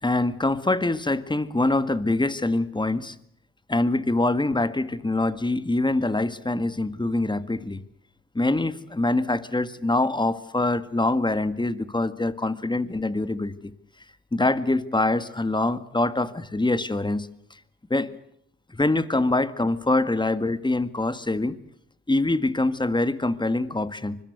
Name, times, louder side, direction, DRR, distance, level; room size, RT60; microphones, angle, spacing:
voice 1, 0.0-3.2 3.7-7.8 8.3-13.7 14.3-17.6 17.9-18.1 18.7-21.6 22.1-24.2, left 2 dB, 15° left, 14 dB, 1.8 m, -24 dB
25.0 x 21.5 x 8.2 m, 0.72 s
supercardioid pair, 60°, 32 cm